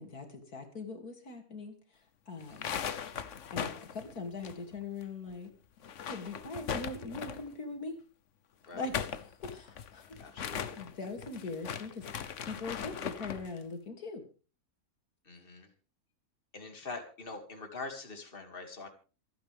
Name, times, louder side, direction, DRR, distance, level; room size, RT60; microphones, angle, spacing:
voice 1, 0.0-1.8 2.3-2.8 3.5-5.5 6.1-8.0 8.7-8.9 9.4-10.5 10.8-14.2, left 3 dB, 85° left, 3 dB, 3.1 m, -41 dB
sound 1, 2.4-5.0 5.3-5.4 5.8-7.5 8.6-13.5, left 8 dB, 55° left, 1.2 m, -39 dB
voice 2, 2.4-2.7 8.7-8.8 10.2-10.8 15.2-15.7 16.5-18.9, left 3 dB, 35° left, 4 dB, 2.6 m, -44 dB
26.5 x 9.2 x 3.5 m, 0.35 s
omnidirectional pair, 1.6 m